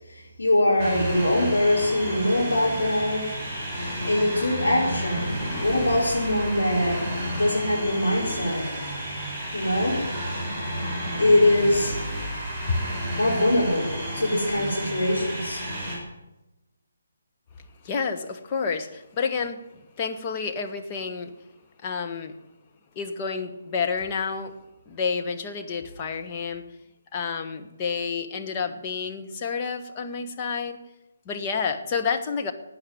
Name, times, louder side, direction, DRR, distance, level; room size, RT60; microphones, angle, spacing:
voice 1, 0.1-3.3 3.7-7.0 7.3-8.6 9.5-10.0 11.2-12.0 13.2-15.6, left 1 dB, 65° left, -3 dB, 4.8 m, -23 dB
sound 1, 0.8-16.0, equal, 5° left, 5.7 m, -31 dB
voice 2, 17.8-21.3 21.8-22.4 22.9-24.6 24.9-26.7 27.1-30.8 31.2-32.5, left 5 dB, 25° left, 4 dB, 1.2 m, -29 dB
13.0 x 9.0 x 9.1 m, 1.0 s
figure-of-eight pair, 145°, 0 cm